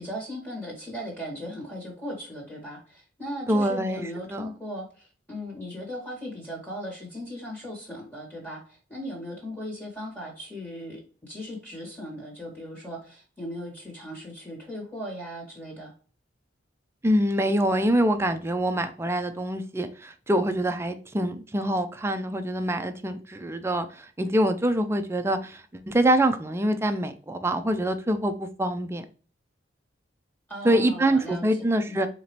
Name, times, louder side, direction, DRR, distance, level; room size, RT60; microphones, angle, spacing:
voice 1, 0.0-15.9 30.5-31.5 31.9-32.0, equal, 10° left, -2 dB, 1.7 m, -38 dB
voice 2, 3.5-4.0 4.3-4.5 17.0-29.0 30.6-32.1, right 1 dB, 15° right, 8 dB, 0.4 m, -25 dB
4.3 x 2.9 x 3.0 m, 0.40 s
head